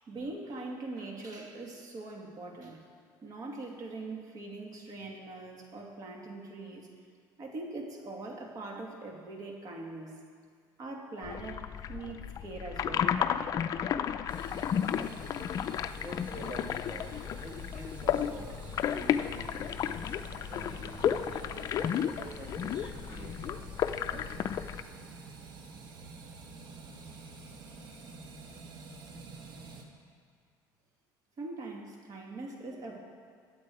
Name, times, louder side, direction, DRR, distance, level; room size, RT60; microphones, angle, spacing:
voice 1, 0.1-2.9 3.2-6.9 7.4-10.2 10.8-11.6 11.9-13.2 31.4-33.0, right 2 dB, 45° right, 0 dB, 2.4 m, -42 dB
sound 1, 11.2-24.8, left 9 dB, 45° left, 0.5 m, -33 dB
sound 2, 14.3-29.8, right 4 dB, 60° right, 1.6 m, -48 dB
voice 2, 15.9-23.8 24.1-24.4, equal, 20° right, 1 dB, 1.9 m, -47 dB
21.0 x 8.5 x 4.8 m, 2.1 s
cardioid pair, 130°, 9 cm